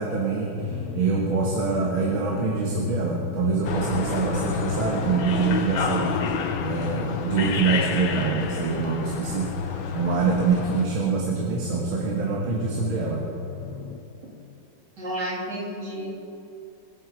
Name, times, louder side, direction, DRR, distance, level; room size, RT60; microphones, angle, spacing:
voice 1, 0.0-6.2 6.6-13.2, right 5 dB, 85° right, -2 dB, 2.3 m, -25 dB
Drum, 0.6-14.0, left 6 dB, 55° left, 1.2 m, -34 dB
sound 1, 3.6-10.8, left 6 dB, 75° left, 1.7 m, -30 dB
voice 2, 15.0-16.1, equal, 55° right, -6 dB, 3.9 m, -31 dB
22.5 x 8.9 x 4.7 m, 2.7 s
omnidirectional pair, 2.2 m